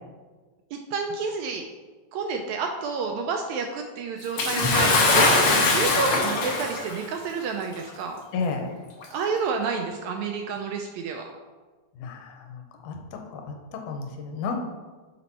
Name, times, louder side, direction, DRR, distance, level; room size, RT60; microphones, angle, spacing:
voice 1, 0.7-1.7 2.1-8.2 9.1-11.3, right 5 dB, 80° right, 3 dB, 1.7 m, -30 dB
Bathtub (filling or washing) / Splash splatter, 4.4-7.0 7.9-8.0 9.0-9.1, left 3 dB, 65° left, 1.4 m, -21 dB
voice 2, 8.3-8.7 12.0-13.0 13.3-13.4 13.7-14.6, left 5 dB, 85° left, 3 dB, 2.2 m, -31 dB
7.1 x 4.3 x 4.1 m, 1.3 s
omnidirectional pair, 3.6 m